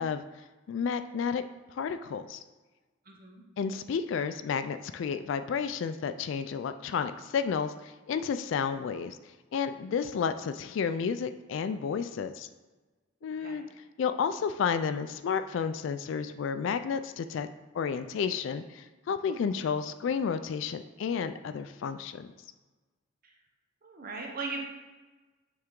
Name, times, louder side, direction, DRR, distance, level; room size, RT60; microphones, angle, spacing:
voice 1, 0.0-1.4 1.7-2.4 3.6-9.2 9.5-12.5 13.2-13.6 14.0-17.5 17.7-22.3, left 6 dB, 65° left, 10 dB, 0.3 m, -31 dB
voice 2, 3.1-3.4 13.4-13.6 23.8-24.6, right 4 dB, 45° right, 0 dB, 0.9 m, -38 dB
9.4 x 3.4 x 3.7 m, 1.2 s
head